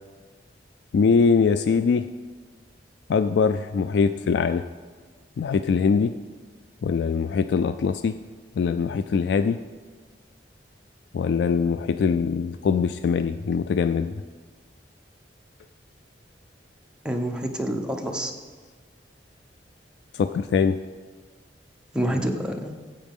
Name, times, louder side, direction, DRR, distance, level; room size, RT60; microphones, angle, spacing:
voice 1, 0.9-2.1 3.1-4.6 5.4-6.1 6.8-8.2 8.6-9.6 11.1-14.2 20.1-20.8, left 5 dB, 70° left, 10 dB, 0.3 m, -22 dB
voice 2, 17.0-18.3 21.9-22.7, right 1 dB, 5° right, 2 dB, 0.8 m, -27 dB
15.0 x 8.2 x 3.6 m, 1.5 s
head